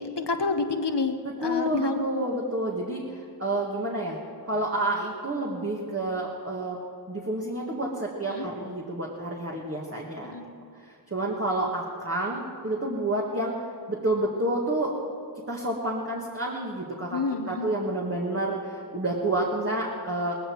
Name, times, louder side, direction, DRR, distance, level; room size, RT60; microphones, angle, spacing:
voice 1, 0.0-2.0 8.3-8.5 10.2-10.5 17.1-17.7, left 4 dB, 80° left, 7 dB, 1.3 m, -29 dB
voice 2, 1.4-4.2 4.4-6.8 7.1-10.3 10.8-13.5 13.9-14.9 15.5-17.2 17.5-20.4, right 1 dB, 35° right, -3 dB, 2.0 m, -29 dB
18.5 x 15.0 x 4.7 m, 2.4 s
wide cardioid pair, 40°, 41 cm